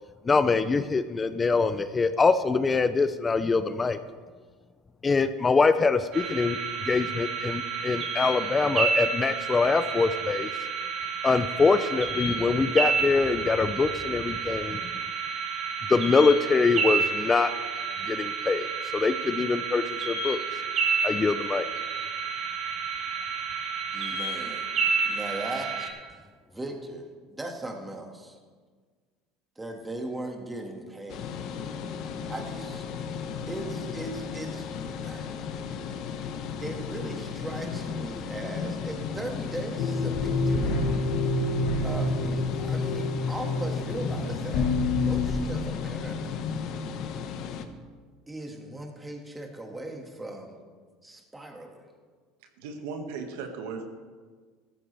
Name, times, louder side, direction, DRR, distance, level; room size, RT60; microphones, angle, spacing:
voice 1, 0.2-4.0 5.0-10.5 11.2-14.8 15.9-17.5 18.0-20.4 21.0-21.7, left 4 dB, 20° left, 12 dB, 0.5 m, -24 dB
sound 1, 6.1-25.9, right 5 dB, 45° right, 2.5 m, -30 dB
voice 2, 23.9-24.7 25.0-25.9 26.5-28.4 29.6-31.4 32.3-33.2 33.5-35.3 36.6-40.8 41.8-46.4 48.3-50.6 51.0-51.8, right 1 dB, 10° right, 2 dB, 2.0 m, -38 dB
sound 2, 31.1-47.7, left 6 dB, 55° left, 1.1 m, -35 dB
sound 3, 39.8-45.3, left 2 dB, 75° left, 3.1 m, -27 dB
voice 3, 52.6-53.8, right 5 dB, 85° right, 4 dB, 1.8 m, -36 dB
15.5 x 13.5 x 3.4 m, 1.5 s
supercardioid pair, 125°, 0 cm